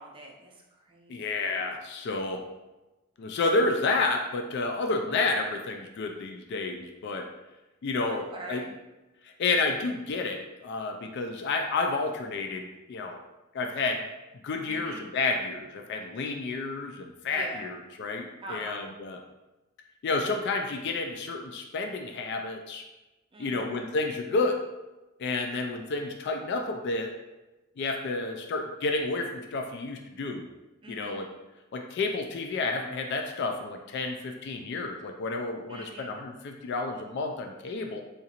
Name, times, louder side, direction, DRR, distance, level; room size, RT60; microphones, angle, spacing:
voice 1, 0.0-1.4 8.1-8.7 14.7-15.1 17.3-17.7 18.4-19.0 23.3-23.7 30.8-31.2 35.7-36.2, right 2 dB, 25° right, -1 dB, 0.5 m, -43 dB
voice 2, 1.1-2.5 3.2-7.3 7.8-8.7 9.4-13.2 13.5-14.1 14.4-19.2 20.0-22.8 23.4-24.6 25.2-27.1 27.8-30.5 30.9-31.3 31.7-38.0, left 3 dB, 50° left, 3 dB, 0.3 m, -30 dB
3.8 x 2.4 x 2.8 m, 1.1 s
head